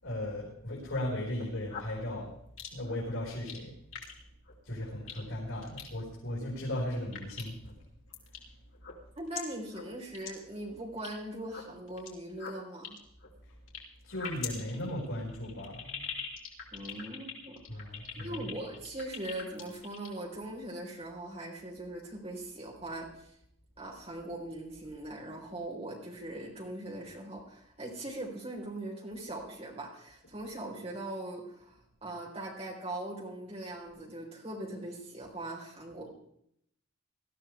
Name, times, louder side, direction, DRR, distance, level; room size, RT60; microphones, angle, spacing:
voice 1, 0.0-2.3 2.7-3.7 4.6-7.8 14.0-16.0 17.7-18.5, left 1 dB, 85° left, -6 dB, 4.8 m, -36 dB
sound 1, 1.2-2.0 2.6-2.9 3.3-3.6 3.9-4.1 4.5-4.6 5.1-5.2 5.6-5.9 6.5-6.8 7.1-7.7 8.1-8.4 8.7-9.4 9.7-9.8 10.1-10.3 10.5-11.1 11.4-12.1 12.4-13.8 14.1-20.1, left 7 dB, 65° left, 3.1 m, -42 dB
voice 2, 9.2-13.0 16.7-17.6 18.2-23.3 23.8-36.1, right 1 dB, 30° right, -1 dB, 3.7 m, -41 dB
19.0 x 13.5 x 3.4 m, 0.72 s
head